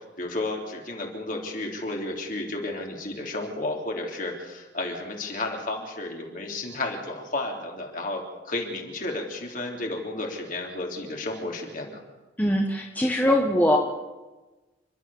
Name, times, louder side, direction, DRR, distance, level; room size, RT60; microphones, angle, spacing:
voice 1, 0.2-12.0, left 2 dB, 45° left, 1 dB, 3.5 m, -32 dB
voice 2, 12.4-13.8, equal, 10° left, 0 dB, 1.4 m, -22 dB
29.0 x 12.0 x 7.3 m, 1.2 s
head